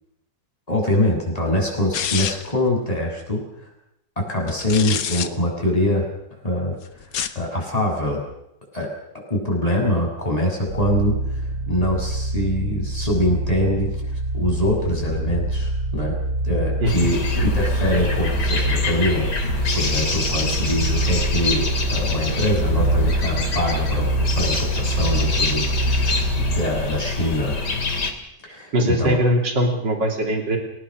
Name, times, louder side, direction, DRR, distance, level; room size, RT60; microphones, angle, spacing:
voice 1, 0.7-3.4 4.2-8.2 8.7-8.9 9.3-16.2 16.4-26.2 26.5-27.6 28.4-29.2, left 1 dB, 20° left, 0 dB, 7.1 m, -24 dB
sound 1, 1.9-2.6 4.5-5.3 7.0-7.4, left 8 dB, 90° left, 1.9 m, -26 dB
sound 2, 10.7-26.8, right 2 dB, 65° right, 3.3 m, -25 dB
sound 3, 16.9-28.1, left 3 dB, 70° left, 3.3 m, -26 dB
voice 2, 28.7-30.6, equal, 80° right, 2 dB, 4.0 m, -21 dB
29.0 x 18.5 x 6.5 m, 0.81 s
omnidirectional pair, 1.9 m